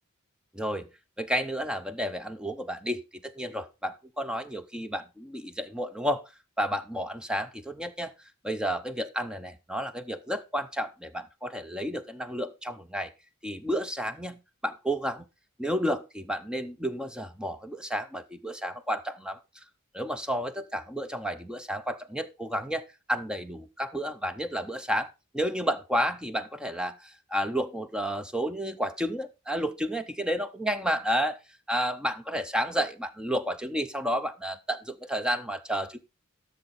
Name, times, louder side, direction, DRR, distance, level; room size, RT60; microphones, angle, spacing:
voice 1, 0.5-0.8 1.2-6.2 6.6-8.1 8.4-13.1 13.4-15.2 15.6-19.4 19.9-31.4 31.7-36.0, equal, 5° right, 0.5 m, -31 dB
12.0 x 6.5 x 4.2 m
head